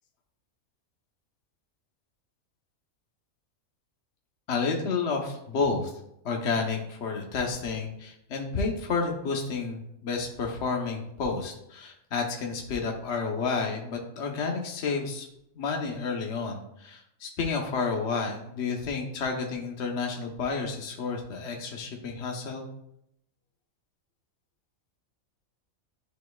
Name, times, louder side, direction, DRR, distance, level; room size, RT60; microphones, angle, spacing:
voice 1, 4.5-5.9 6.2-15.3 15.6-22.6, left 4 dB, 55° left, 1 dB, 1.2 m, -30 dB
10.5 x 4.5 x 2.3 m, 0.77 s
omnidirectional pair, 1.5 m